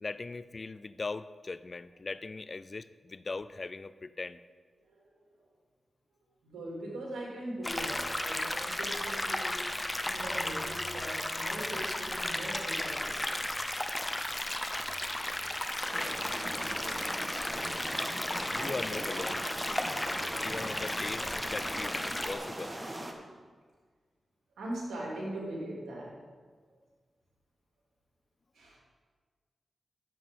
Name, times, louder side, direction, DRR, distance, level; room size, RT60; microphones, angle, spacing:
voice 1, 0.0-4.4 18.5-19.5 20.4-22.8, left 3 dB, 50° left, 15 dB, 0.4 m, -39 dB
voice 2, 4.8-5.4 6.4-9.7 10.0-13.3 17.6-19.2 23.1-23.4 24.6-26.2 26.7-26.8 28.5-28.8, right 1 dB, 90° right, -3 dB, 2.6 m, -42 dB
sound 1, 7.6-22.3, left 1 dB, 20° left, 0.9 m, -34 dB
sound 2, 15.9-23.1, right 1 dB, 30° right, 1.5 m, -40 dB
13.0 x 7.8 x 3.7 m, 1.5 s
cardioid pair, 45°, 0 cm